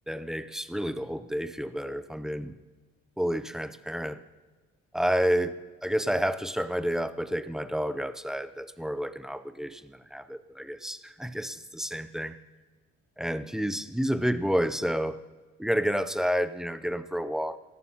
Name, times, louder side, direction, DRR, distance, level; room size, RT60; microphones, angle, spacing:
voice 1, 0.1-2.5 3.2-4.2 4.9-12.4 13.2-15.2 15.6-17.6, equal, ahead, 0.5 m, -30 dB
17.0 x 14.0 x 2.9 m
cardioid pair, 90°, 30 cm